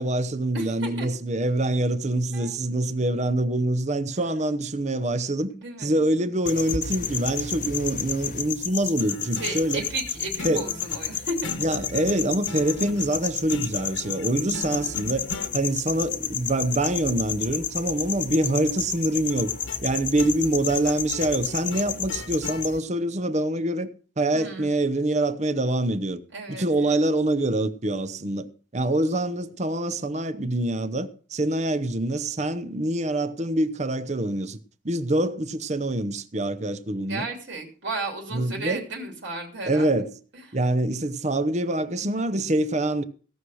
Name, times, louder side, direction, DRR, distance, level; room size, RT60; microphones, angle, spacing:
voice 1, 0.0-5.5 5.8-9.8 10.4-10.7 11.6-15.3 15.5-19.5 19.8-23.9 24.2-26.2 26.5-34.6 34.8-37.3 38.3-38.9 39.6-40.1 40.5-43.0, right 1 dB, 35° right, 0.8 m, -25 dB
voice 2, 0.5-1.1 2.3-2.6 5.5-6.0 9.3-11.5 24.3-24.7 26.3-27.0 37.0-40.0 40.3-40.4, right 2 dB, 70° right, 3.1 m, -34 dB
sound 1, 6.5-22.8, left 8 dB, 45° left, 0.9 m, -31 dB
sound 2, 9.0-15.6 19.3-22.7, left 2 dB, 85° left, 1.5 m, -40 dB
17.0 x 6.4 x 6.3 m
head